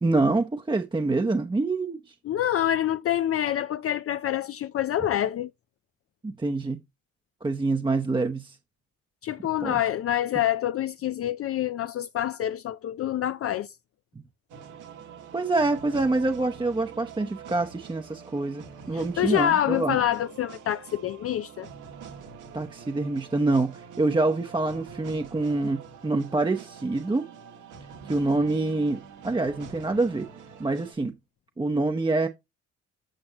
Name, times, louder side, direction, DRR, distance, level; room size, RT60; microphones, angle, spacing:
voice 1, 0.0-2.1 6.2-6.8 7.4-8.6 9.6-9.8 15.3-20.0 22.5-27.3 28.0-30.3 30.6-31.1 31.6-32.3, right 2 dB, 15° right, 0.8 m, -26 dB
voice 2, 2.3-5.5 9.2-13.7 18.9-21.7, left 11 dB, 50° left, 0.5 m, -26 dB
sound 1, 14.5-30.9, right 6 dB, 85° right, 2.2 m, -45 dB
8.9 x 5.3 x 2.9 m
cardioid pair, 90°, 30 cm